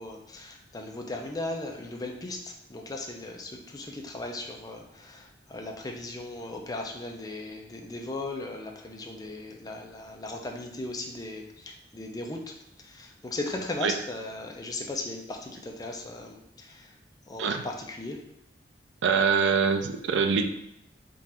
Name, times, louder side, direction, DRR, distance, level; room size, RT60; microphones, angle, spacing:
voice 1, 0.0-16.9 17.3-18.2, left 2 dB, 20° left, 1 dB, 0.5 m, -37 dB
voice 2, 19.0-20.5, right 5 dB, 90° right, 7 dB, 0.4 m, -24 dB
3.8 x 2.5 x 4.2 m, 0.78 s
head